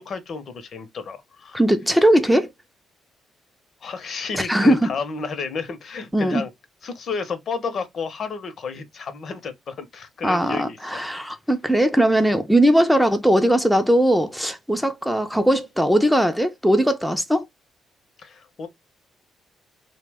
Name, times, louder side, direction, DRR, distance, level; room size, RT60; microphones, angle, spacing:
voice 1, 0.0-1.6 3.8-6.5 6.8-11.1 18.2-18.7, left 5 dB, 55° left, 0.6 m, -32 dB
voice 2, 1.5-2.5 4.3-4.9 6.1-6.4 10.2-17.4, right 1 dB, ahead, 0.4 m, -19 dB
2.7 x 2.1 x 3.3 m
cardioid pair, 90°, 0 cm